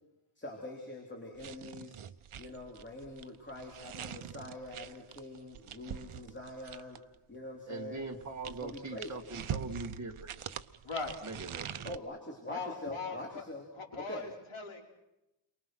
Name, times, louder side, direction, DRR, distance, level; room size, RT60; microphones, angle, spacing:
voice 1, 0.4-2.0 2.4-7.0 7.3-8.0 8.4-9.1 11.8-13.7 14.0-14.3, left 1 dB, 20° left, 0 dB, 3.6 m, -44 dB
sound 1, 1.4-7.1 8.0-12.0, right 9 dB, 80° right, 0.9 m, -44 dB
voice 2, 7.7-10.3 11.2-11.9, right 3 dB, 35° right, 4 dB, 2.1 m, -42 dB
voice 3, 10.8-11.2 12.5-13.4 13.8-15.0, left 4 dB, 80° left, 0 dB, 5.2 m, -40 dB
30.0 x 23.5 x 6.3 m, 0.90 s
wide cardioid pair, 165°, 49 cm